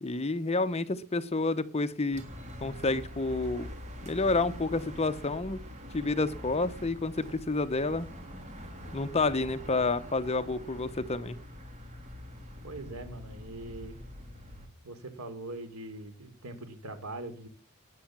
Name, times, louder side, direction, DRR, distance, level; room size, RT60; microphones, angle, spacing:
voice 1, 0.0-2.3 2.6-3.7 4.0-5.6 5.9-8.1 8.9-11.4, left 3 dB, 30° left, 13 dB, 0.9 m, -29 dB
sound 1, 2.1-14.7, equal, 30° right, 3.4 m, -44 dB
voice 2, 12.6-14.0 14.8-17.5, right 2 dB, 75° right, 9 dB, 3.2 m, -42 dB
19.0 x 9.1 x 7.4 m, 0.42 s
head